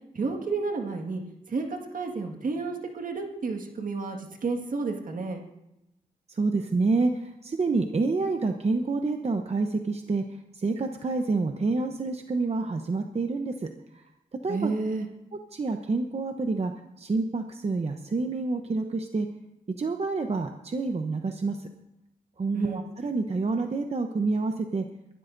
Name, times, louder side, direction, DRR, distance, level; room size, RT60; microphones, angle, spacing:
voice 1, 0.2-1.2 1.5-5.4 14.5-15.1 22.5-22.8, right 4 dB, 65° right, 3 dB, 1.8 m, -31 dB
voice 2, 6.3-10.2 10.6-13.7 14.4-14.7 15.5-16.7 17.0-19.3 19.8-21.6 22.4-24.8, right 3 dB, 45° right, 5 dB, 0.9 m, -28 dB
22.5 x 12.5 x 2.6 m, 0.87 s
cardioid pair, 60°, 15 cm